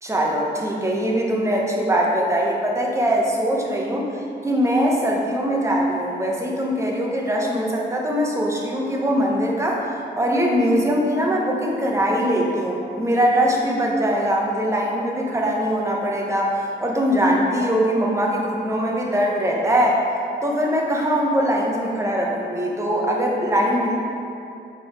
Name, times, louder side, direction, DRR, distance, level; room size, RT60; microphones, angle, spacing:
voice 1, 0.0-4.1 4.4-20.0 20.4-24.0, equal, 15° right, -2 dB, 1.0 m, -22 dB
5.7 x 4.5 x 4.9 m, 2.6 s
wide cardioid pair, 110°, 18 cm